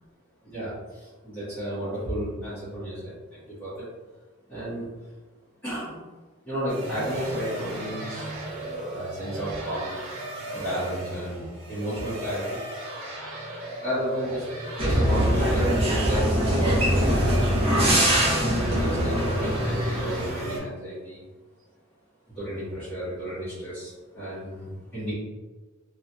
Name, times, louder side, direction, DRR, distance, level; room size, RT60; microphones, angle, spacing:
voice 1, 0.4-3.9 4.5-4.8 5.6-6.0 6.4-8.3 8.9-10.0 10.5-12.6 13.8-14.5 14.8-17.3 18.0-21.2 22.3-25.1, equal, 10° left, -16 dB, 1.3 m, -33 dB
sound 1, 6.7-20.6, right 1 dB, 85° right, 1.3 m, -34 dB
sound 2, 14.8-20.3, equal, 30° right, 0.8 m, -23 dB
3.5 x 2.8 x 2.2 m, 1.3 s
head